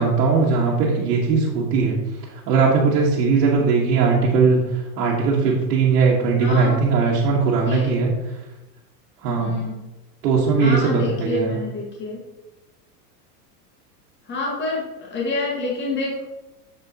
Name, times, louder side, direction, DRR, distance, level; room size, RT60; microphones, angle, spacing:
voice 1, 0.0-2.0 2.3-8.1 9.2-9.5 10.2-11.6, right 4 dB, 75° right, -4 dB, 1.5 m, -19 dB
voice 2, 6.4-6.8 7.6-7.9 9.4-9.7 10.6-12.2 14.3-16.2, left 2 dB, 25° left, -2 dB, 1.7 m, -27 dB
7.1 x 6.7 x 2.9 m, 1.0 s
supercardioid pair, 120°, 48 cm